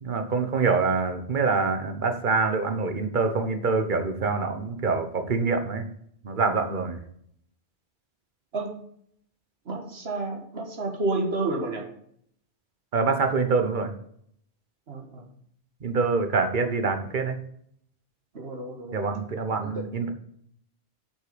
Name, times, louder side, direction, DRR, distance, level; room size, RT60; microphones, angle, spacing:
voice 1, 0.0-5.8 6.2-7.0 12.9-13.9 15.8-17.4 18.9-20.1, right 4 dB, 50° right, 7 dB, 1.2 m, -25 dB
voice 2, 9.7-11.9 14.9-15.3 18.3-19.0 19.6-19.8, right 2 dB, 70° right, 2 dB, 1.8 m, -30 dB
8.0 x 6.1 x 5.1 m, 0.67 s
omnidirectional pair, 1.1 m